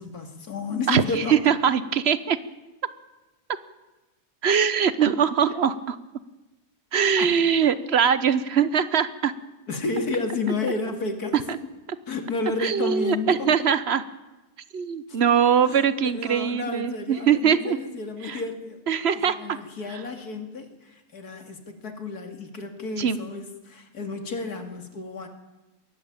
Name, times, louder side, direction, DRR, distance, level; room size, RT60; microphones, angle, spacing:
voice 1, 0.0-1.3 5.5-5.6 7.2-7.3 9.7-11.5 12.1-13.7 15.1-15.2 15.6-15.9 16.1-18.8 19.2-25.3, left 3 dB, 70° left, 6 dB, 2.9 m, -31 dB
voice 2, 0.9-2.4 4.4-5.9 6.9-9.3 11.3-11.6 12.6-14.0 14.7-17.8 18.2-18.4 18.9-19.6 23.0-23.2, right 7 dB, 45° right, 15 dB, 1.1 m, -22 dB
22.0 x 16.5 x 8.9 m, 1.1 s
omnidirectional pair, 1.7 m